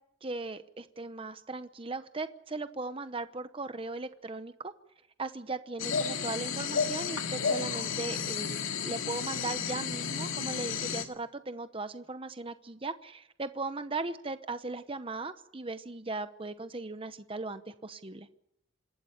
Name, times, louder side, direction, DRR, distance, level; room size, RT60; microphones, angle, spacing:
voice 1, 0.2-4.7 5.2-18.3, right 3 dB, 25° right, 10 dB, 0.9 m, -38 dB
sound 1, 5.8-11.0, left 6 dB, 80° left, 2.2 m, -32 dB
27.0 x 12.5 x 9.9 m, 0.77 s
head